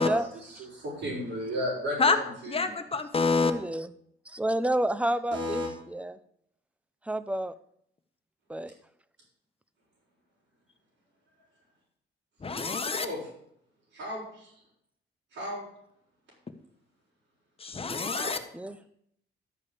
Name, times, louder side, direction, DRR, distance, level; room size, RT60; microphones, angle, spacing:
voice 1, 0.0-2.8 5.3-5.7 13.0-13.2 13.9-14.5 15.3-15.6 18.1-18.4, equal, 75° right, -8 dB, 5.8 m, -34 dB
voice 2, 2.4-3.5 12.4-13.1 17.6-18.4, left 4 dB, 30° left, 8 dB, 1.4 m, -26 dB
voice 3, 3.4-3.9 4.3-6.2 7.1-7.5 8.5-8.7 18.5-18.8, right 1 dB, 5° right, 14 dB, 0.7 m, -30 dB
12.0 x 5.3 x 8.4 m, 0.70 s
cardioid pair, 90°, 20 cm